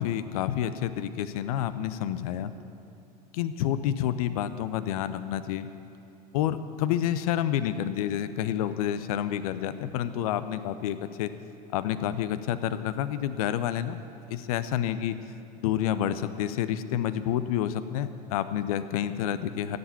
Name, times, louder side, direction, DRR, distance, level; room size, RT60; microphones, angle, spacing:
voice 1, 0.0-2.5 3.3-5.7 6.3-11.3 11.7-14.0 14.3-15.2 15.6-19.8, left 11 dB, 60° left, 13 dB, 0.6 m, -29 dB
15.0 x 7.9 x 7.1 m, 2.9 s
figure-of-eight pair, 70°, 21 cm